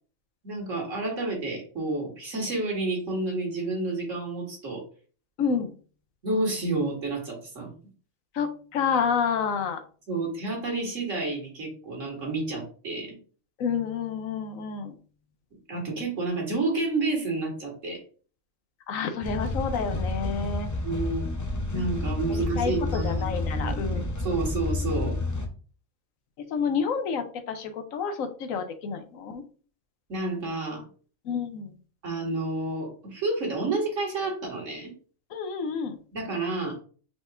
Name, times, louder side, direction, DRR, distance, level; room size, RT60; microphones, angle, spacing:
voice 1, 0.4-4.8 6.2-7.7 10.1-13.2 15.7-18.0 20.8-21.3 21.7-25.1 30.1-30.8 32.0-34.9 36.1-36.8, right 2 dB, 65° right, 0 dB, 2.1 m, -30 dB
voice 2, 5.4-5.7 8.3-9.8 13.6-14.9 18.9-20.7 22.3-24.4 26.5-29.4 31.2-31.7 35.3-36.0, left 6 dB, 75° left, 8 dB, 1.1 m, -29 dB
sound 1, 19.2-25.5, left 2 dB, 25° left, 0.4 m, -30 dB
4.9 x 4.1 x 2.5 m, 0.40 s
omnidirectional pair, 1.4 m